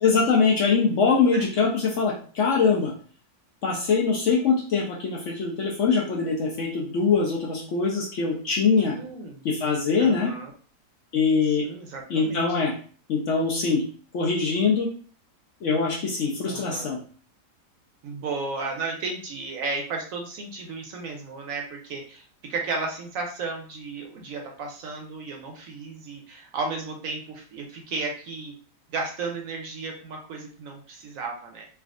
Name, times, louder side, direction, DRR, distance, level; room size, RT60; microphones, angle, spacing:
voice 1, 0.0-2.9 3.6-9.0 9.4-10.3 11.1-11.6 12.1-12.7 13.1-13.8 14.1-14.9 15.6-17.0, left 5 dB, 65° left, -2 dB, 0.7 m, -23 dB
voice 2, 8.8-9.4 10.0-10.5 11.6-12.4 16.5-16.9 18.0-22.2 22.5-28.5 28.9-31.6, right 3 dB, 70° right, 1 dB, 0.9 m, -34 dB
3.4 x 2.4 x 2.4 m, 0.43 s
omnidirectional pair, 1.7 m